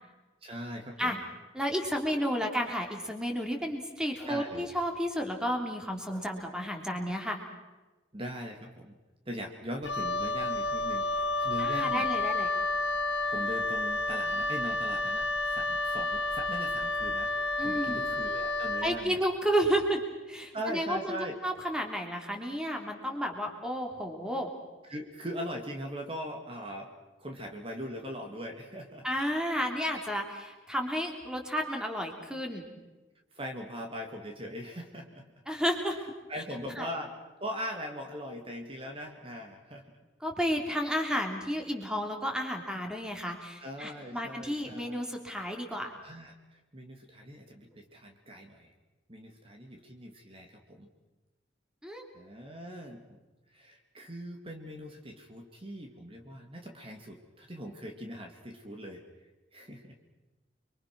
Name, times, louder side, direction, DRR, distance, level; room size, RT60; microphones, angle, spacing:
voice 1, 0.4-1.2 4.3-4.7 8.1-8.9 9.3-12.1 12.5-12.6 13.3-19.2 20.5-21.4 24.9-26.9 27.2-29.1 33.3-35.3 36.3-37.1 37.4-39.9 40.8-41.0 43.6-45.1 46.0-46.3 46.7-48.7 49.1-50.9 52.1-53.2 53.5-59.0 59.5-60.0, equal, 30° right, 3 dB, 2.3 m, -40 dB
voice 2, 1.5-7.4 11.6-12.5 17.6-18.0 18.8-20.0 20.3-24.5 29.0-32.7 35.5-36.0 36.8-36.9 40.2-45.9 51.8-52.0, equal, 5° right, 2 dB, 3.4 m, -32 dB
Wind instrument woodwind instrument, 9.8-18.9, left 2 dB, 65° left, 2.2 m, -30 dB
29.5 x 23.5 x 6.2 m, 1.2 s
head